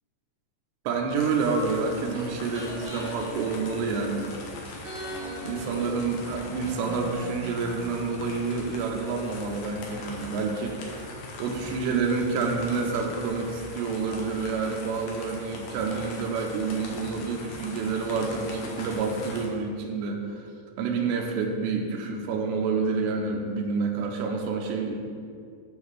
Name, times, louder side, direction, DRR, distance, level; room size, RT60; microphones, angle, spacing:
voice 1, 0.9-4.3 5.4-11.1 11.4-20.4 20.8-25.0, right 4 dB, 80° right, 1 dB, 2.8 m, -28 dB
sound 1, 1.1-19.5, left 2 dB, 80° left, 2.0 m, -41 dB
sound 2, 1.5-4.4 4.8-8.6 8.9-9.0, right 1 dB, 50° right, 3.0 m, -41 dB
9.1 x 5.8 x 3.3 m, 2.2 s
omnidirectional pair, 5.1 m